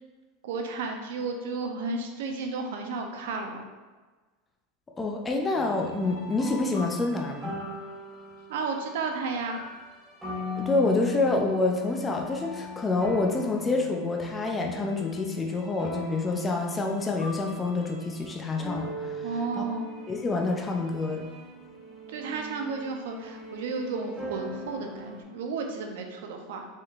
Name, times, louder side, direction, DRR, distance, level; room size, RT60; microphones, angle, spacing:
voice 1, 0.4-3.6 8.5-9.6 19.2-19.9 22.1-26.7, right 4 dB, 80° right, 4 dB, 0.7 m, -33 dB
voice 2, 5.0-7.6 10.6-19.3 19.6-19.7 20.1-21.3, left 3 dB, 15° left, 1 dB, 0.4 m, -27 dB
sound 1, 5.6-25.2, left 2 dB, 10° right, 1.0 m, -40 dB
5.4 x 3.7 x 2.5 m, 1.3 s
supercardioid pair, 155°, 0 cm